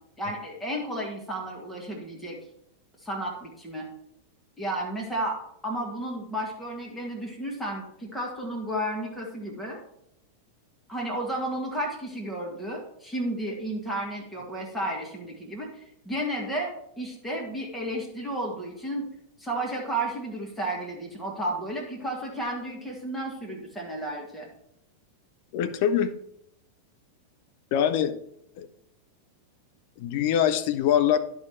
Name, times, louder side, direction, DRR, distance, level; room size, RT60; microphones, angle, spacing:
voice 1, 0.2-2.4 3.0-3.9 4.6-9.8 10.9-19.1 19.4-24.5, right 1 dB, 5° left, -2 dB, 1.8 m, -32 dB
voice 2, 25.5-26.1 27.7-28.1 28.6-28.7 30.0-31.2, left 9 dB, 45° left, 10 dB, 0.6 m, -23 dB
10.5 x 4.8 x 4.4 m, 0.75 s
figure-of-eight pair, 90°, 0 cm